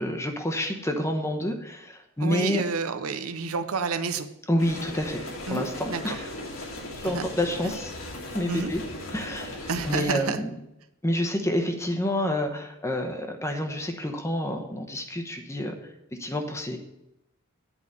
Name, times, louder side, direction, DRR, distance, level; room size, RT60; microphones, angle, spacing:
voice 1, 0.0-2.6 4.5-6.3 7.0-7.9 8.3-8.8 9.1-10.5 11.0-15.7 16.2-16.8, left 1 dB, 15° left, 5 dB, 0.9 m, -28 dB
voice 2, 2.2-4.3 5.5-6.2 7.0-7.3 7.6-7.8 8.5-8.7 9.7-10.4, right 5 dB, 85° right, 10 dB, 0.7 m, -29 dB
sound 1, 4.6-10.0, left 1 dB, 65° left, 1.9 m, -37 dB
8.8 x 5.0 x 6.8 m, 0.86 s
head